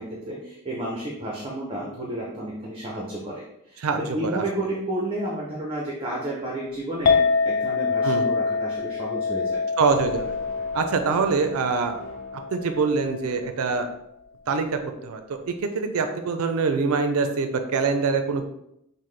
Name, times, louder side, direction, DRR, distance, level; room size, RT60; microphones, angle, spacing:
voice 1, 0.0-9.6, right 1 dB, 25° right, -2 dB, 0.6 m, -31 dB
voice 2, 3.8-4.4 8.0-8.2 9.8-10.3 10.7-12.0 12.5-13.9 14.5-18.4, right 4 dB, 70° right, 7 dB, 0.4 m, -24 dB
Chink clink, 7.1-13.3, left 5 dB, 40° left, 0.3 m, -26 dB
sound 1, 9.8-13.3, equal, 60° left, 0.7 m, -43 dB
5.5 x 2.1 x 3.2 m, 0.79 s
head